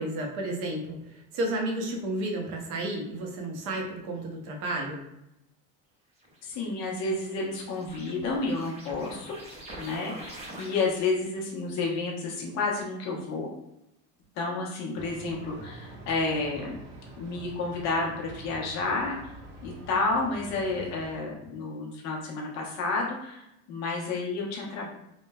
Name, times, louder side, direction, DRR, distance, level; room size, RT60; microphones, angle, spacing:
voice 1, 0.0-5.0, right 1 dB, 60° right, 0 dB, 0.7 m, -32 dB
sound 1, 6.2-11.2, right 1 dB, 20° right, 0.5 m, -45 dB
voice 2, 6.4-9.4 9.8-13.5 14.4-16.8 17.2-19.3 19.6-24.9, left 3 dB, 50° left, -1 dB, 0.7 m, -30 dB
sound 2, 14.9-21.2, right 2 dB, 80° right, 1.0 m, -46 dB
3.0 x 2.1 x 2.2 m, 0.84 s
cardioid pair, 160°, 34 cm